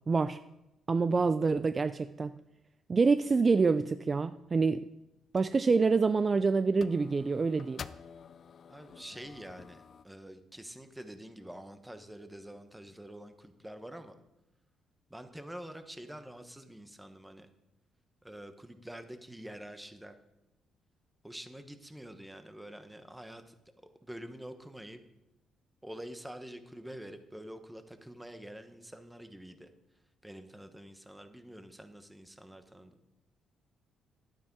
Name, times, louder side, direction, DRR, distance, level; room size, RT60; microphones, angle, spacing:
voice 1, 0.1-0.4 0.9-2.4 2.9-4.9 5.3-7.8, right 4 dB, 35° right, 12 dB, 0.3 m, -26 dB
sound 1, 4.3-4.6 5.4-5.5 5.8-6.4 6.8-10.0, left 7 dB, 50° left, 0.4 m, -49 dB
voice 2, 8.7-14.1 15.1-17.5 18.2-20.1 21.2-23.5 24.0-25.0 25.8-29.7 30.2-33.0, right 1 dB, 5° right, 8 dB, 1.1 m, -47 dB
11.0 x 9.2 x 4.7 m, 0.91 s
cardioid pair, 90°, 0 cm